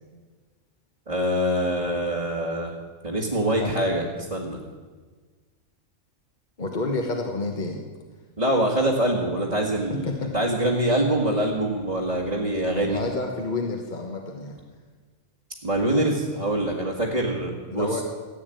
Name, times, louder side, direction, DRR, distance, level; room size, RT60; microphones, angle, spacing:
voice 1, 1.1-2.7 3.0-4.0 4.3-4.6 8.4-13.0 15.6-18.0, right 1 dB, 30° right, -4 dB, 1.8 m, -24 dB
voice 2, 6.6-7.8 9.9-10.3 12.9-14.6 17.7-18.0, left 3 dB, 35° left, 2 dB, 1.4 m, -29 dB
15.5 x 8.6 x 9.2 m, 1.4 s
omnidirectional pair, 1.4 m